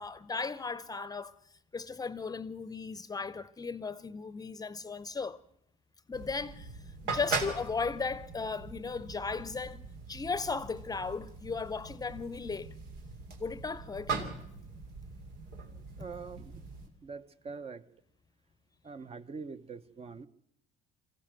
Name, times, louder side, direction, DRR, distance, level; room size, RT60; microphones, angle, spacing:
voice 1, 0.0-1.3 1.7-5.4 6.1-6.7 7.0-12.7 13.4-14.3, left 4 dB, 20° left, 0.7 m, -36 dB
sound 1, 6.1-16.9, right 4 dB, 85° right, 2.7 m, -41 dB
voice 2, 16.0-16.5 17.0-17.8 18.8-20.3, right 5 dB, 35° right, 0.9 m, -43 dB
23.0 x 15.5 x 7.7 m
cardioid pair, 110°, 17 cm